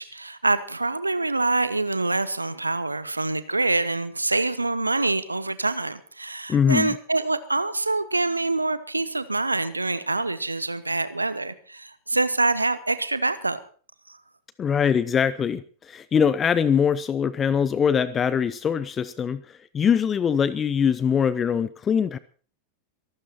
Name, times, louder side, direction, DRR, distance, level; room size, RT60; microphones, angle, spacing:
voice 1, 0.0-13.6 14.1-14.2, right 2 dB, 80° right, 14 dB, 1.0 m, -25 dB
voice 2, 6.5-6.9 14.6-19.4 19.7-22.2, left 7 dB, 20° left, 18 dB, 0.7 m, -22 dB
23.0 x 12.5 x 4.4 m, 0.43 s
figure-of-eight pair, 90°, 0 cm